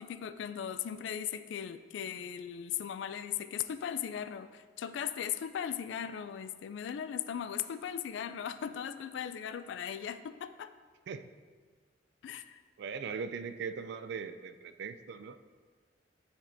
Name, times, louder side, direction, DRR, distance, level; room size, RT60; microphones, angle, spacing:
voice 1, 0.0-10.7 12.2-12.6, left 9 dB, 75° left, 12 dB, 0.3 m, -38 dB
voice 2, 12.8-15.4, right 5 dB, 65° right, 11 dB, 0.3 m, -40 dB
8.5 x 5.1 x 2.6 m, 1.5 s
head